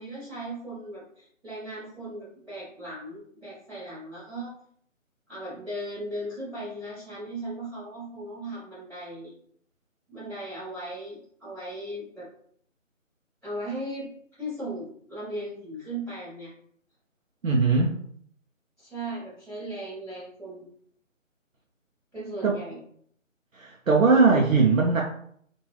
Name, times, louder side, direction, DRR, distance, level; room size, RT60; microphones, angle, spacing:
voice 1, 0.0-4.5 5.3-9.3 10.1-12.3 13.4-14.1 14.4-16.5 18.8-20.6 22.1-22.8, right 1 dB, 5° right, -22 dB, 1.0 m, -37 dB
voice 2, 17.4-18.0 22.4-22.5 23.5-25.0, right 4 dB, 80° right, -2 dB, 0.7 m, -20 dB
3.1 x 2.5 x 3.1 m, 0.64 s
figure-of-eight pair, 155°, 40 cm